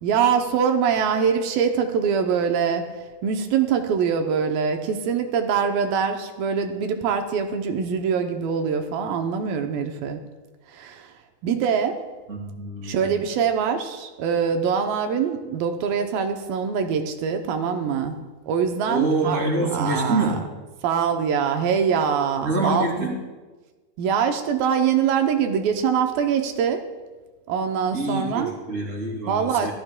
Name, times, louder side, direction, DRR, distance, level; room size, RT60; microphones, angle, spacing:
voice 1, 0.0-2.9 3.2-10.2 10.7-11.1 11.4-12.0 12.8-18.2 18.5-19.4 19.7-20.4 20.8-22.9 24.0-26.8 27.5-28.5 29.3-29.7, right 7 dB, 75° right, 5 dB, 2.3 m, -23 dB
voice 2, 12.3-13.2 18.9-20.4 22.4-23.2 27.9-29.7, right 2 dB, 25° right, -1 dB, 2.0 m, -26 dB
17.0 x 14.0 x 2.2 m, 1.3 s
omnidirectional pair, 4.7 m